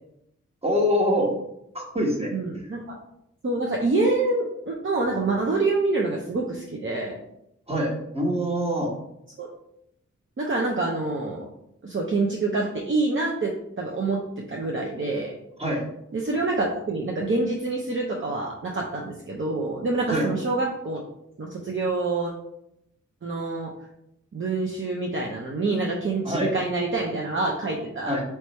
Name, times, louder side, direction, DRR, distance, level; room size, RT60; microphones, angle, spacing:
voice 1, 0.6-1.3 1.7-2.3 7.7-8.9 15.6-15.8 20.1-20.3 26.2-26.5 28.1-28.2, equal, 20° right, -1 dB, 1.3 m, -24 dB
voice 2, 2.3-3.0 3.4-7.2 9.4-9.5 10.4-11.5 11.8-15.3 16.1-21.0 21.4-22.3 23.2-23.7 24.3-28.2, right 3 dB, 40° right, -1 dB, 0.7 m, -26 dB
3.3 x 3.2 x 4.2 m, 0.79 s
cardioid pair, 50°, 31 cm